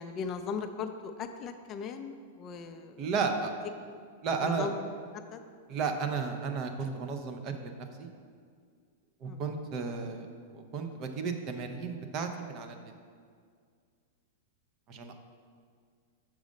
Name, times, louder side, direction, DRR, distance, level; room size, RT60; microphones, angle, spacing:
voice 1, 0.0-3.0 4.4-5.4 9.3-9.4, left 5 dB, 30° left, 7 dB, 0.4 m, -38 dB
voice 2, 3.0-3.5 4.2-4.7 5.7-8.1 9.2-10.3 10.5-12.8 14.9-15.1, right 5 dB, 35° right, 5 dB, 0.7 m, -33 dB
6.3 x 4.8 x 5.2 m, 2.1 s
supercardioid pair, 140°, 0 cm